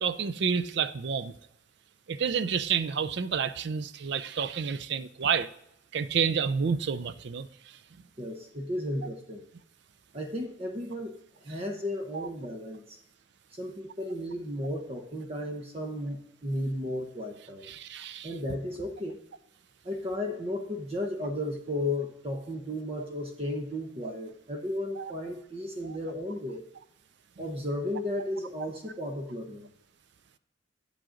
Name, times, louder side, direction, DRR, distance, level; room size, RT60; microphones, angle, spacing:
voice 1, 0.0-1.3 2.1-5.5 5.9-7.5 12.1-12.3 17.7-18.3 25.0-25.1 25.8-25.9, right 6 dB, 60° right, 0.4 m, -29 dB
voice 2, 8.2-9.4 10.1-13.0 13.5-17.7 18.2-19.2 19.8-26.6 27.4-29.7, left 1 dB, 30° right, 0.8 m, -34 dB
8.6 x 7.6 x 3.8 m
head